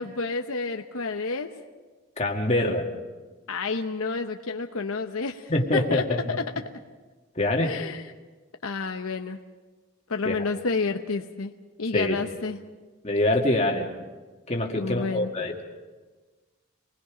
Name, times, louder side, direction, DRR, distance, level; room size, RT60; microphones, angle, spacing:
voice 1, 0.0-1.5 3.5-6.7 7.6-8.0 8.6-9.4 10.1-11.5 11.8-12.6 14.7-15.3, left 4 dB, 75° left, 5 dB, 0.9 m, -30 dB
voice 2, 2.2-2.9 5.5-6.4 7.4-7.7 10.2-10.3 11.9-12.2 13.0-13.9 14.5-15.6, left 1 dB, 30° left, 0 dB, 2.0 m, -25 dB
27.0 x 20.5 x 5.1 m, 1.3 s
head